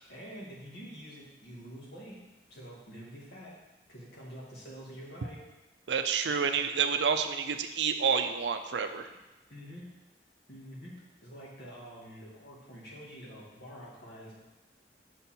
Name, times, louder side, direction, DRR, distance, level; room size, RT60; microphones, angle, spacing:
voice 1, 0.1-2.2 2.5-3.5 3.9-5.4 9.5-9.9 10.5-10.9 11.2-14.3, equal, 70° left, -4 dB, 2.1 m, -47 dB
voice 2, 5.9-9.1, right 6 dB, 85° right, 7 dB, 0.5 m, -29 dB
7.0 x 5.4 x 4.4 m, 1.1 s
head